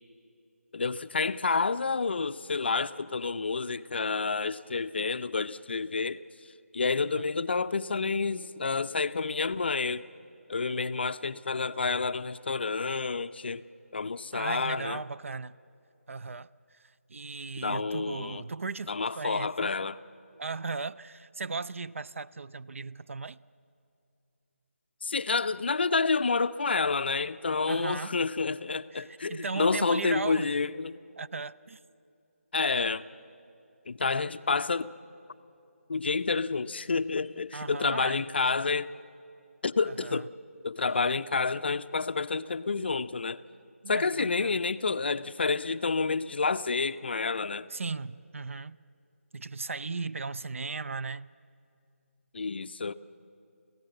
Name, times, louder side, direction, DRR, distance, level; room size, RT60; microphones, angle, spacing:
voice 1, 0.7-6.2 6.7-10.1 10.5-13.6 13.9-15.0 17.6-18.4 18.9-20.0 25.0-31.0 32.5-33.1 33.9-34.9 35.9-38.9 39.6-40.3 40.6-43.4 43.9-47.7 52.3-52.9, left 4 dB, 45° left, 0.4 m, -29 dB
voice 2, 14.3-15.5 16.1-19.7 20.4-23.4 27.7-28.2 28.9-30.6 31.2-31.8 37.5-38.3 39.9-40.2 43.8-44.6 47.7-48.8 49.3-51.3, right 4 dB, 60° right, 0.4 m, -37 dB
25.0 x 16.0 x 7.7 m
figure-of-eight pair, 165°, 8 cm